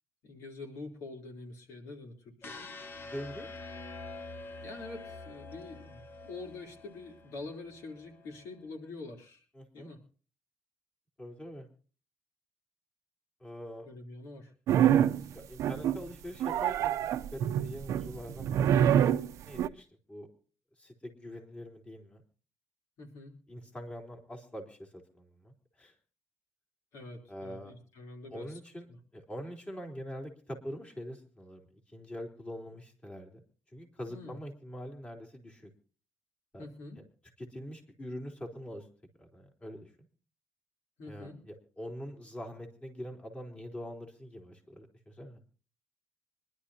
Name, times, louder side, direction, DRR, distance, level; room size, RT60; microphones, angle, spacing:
voice 1, 0.2-2.7 4.6-9.4 9.7-10.0 13.8-14.5 15.1-15.4 23.0-23.3 26.9-28.6 28.9-29.0 34.1-34.4 36.6-37.0 41.0-41.4, left 3 dB, 90° left, 2 dB, 3.4 m, -46 dB
sound 1, 2.4-8.5, left 3 dB, 45° left, 1.4 m, -46 dB
voice 2, 3.0-3.5 9.5-9.9 11.2-11.7 13.4-13.9 14.9-18.7 19.4-20.3 20.8-22.2 23.5-25.9 27.3-27.7 28.3-28.9 29.1-31.7 31.9-33.4 33.7-35.7 36.5-36.7 37.0-37.1 37.4-38.9 39.2-39.9 41.1-45.4, equal, 25° left, 2 dB, 3.7 m, -44 dB
sound 2, 14.7-15.2 15.6-16.1 16.4-19.7, right 10 dB, 80° right, 0.6 m, -26 dB
25.0 x 11.5 x 2.8 m, 0.39 s
cardioid pair, 95°, 5 cm